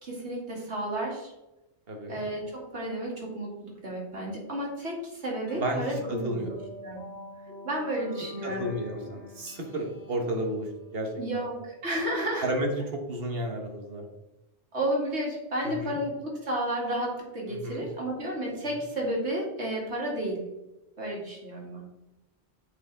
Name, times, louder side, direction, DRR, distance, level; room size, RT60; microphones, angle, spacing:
voice 1, 0.0-1.3 2.1-6.5 6.8-7.1 7.6-8.7 11.2-12.5 14.7-20.4 21.0-21.8, right 1 dB, 75° right, -2 dB, 2.7 m, -32 dB
voice 2, 1.9-2.2 5.6-6.5 8.4-10.7 10.9-11.4 12.4-14.0 15.6-16.0 17.5-17.8, right 1 dB, 60° right, 2 dB, 1.5 m, -32 dB
sound 1, 5.5-12.3, left 2 dB, 85° left, 1.6 m, -47 dB
9.0 x 5.0 x 3.4 m, 0.97 s
omnidirectional pair, 1.1 m